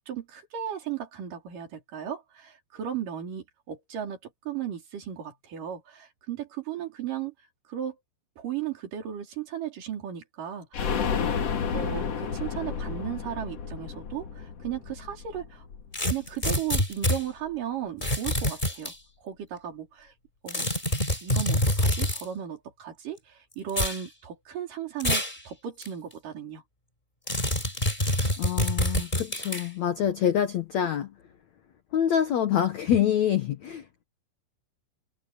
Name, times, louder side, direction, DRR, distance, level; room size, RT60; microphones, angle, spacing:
voice 1, 0.0-7.3 7.7-8.0 8.4-10.9 11.7-15.6 16.1-20.1 20.4-20.7 21.2-26.6, right 9 dB, 55° right, 5.1 m, -35 dB
sound 1, 10.7-16.4 16.7-16.8 17.1-17.2, left 6 dB, 50° left, 2.2 m, -31 dB
sound 2, 15.9-17.2 18.0-18.9 20.5-22.2 23.7-24.0 25.0-25.4 25.8-25.9 27.3-29.7, left 1 dB, 10° left, 5.5 m, -26 dB
voice 2, 28.4-31.1 31.9-34.0, left 9 dB, 65° left, 1.8 m, -26 dB
omnidirectional pair, 4.8 m